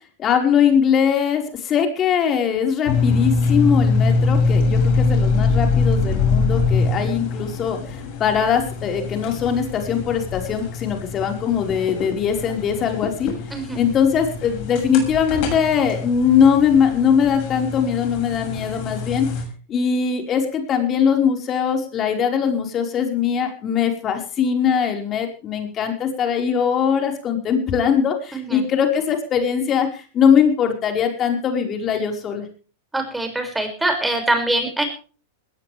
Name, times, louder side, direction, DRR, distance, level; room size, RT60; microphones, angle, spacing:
voice 1, 0.2-13.3 13.7-19.3 19.7-32.5, left 7 dB, 30° left, 4 dB, 5.0 m, -21 dB
sound 1, 2.9-19.4, left 4 dB, 50° left, 6.9 m, -23 dB
voice 2, 32.9-34.9, right 1 dB, 5° right, 5 dB, 6.4 m, -23 dB
20.0 x 17.5 x 3.5 m, 0.39 s
figure-of-eight pair, 100°, 0 cm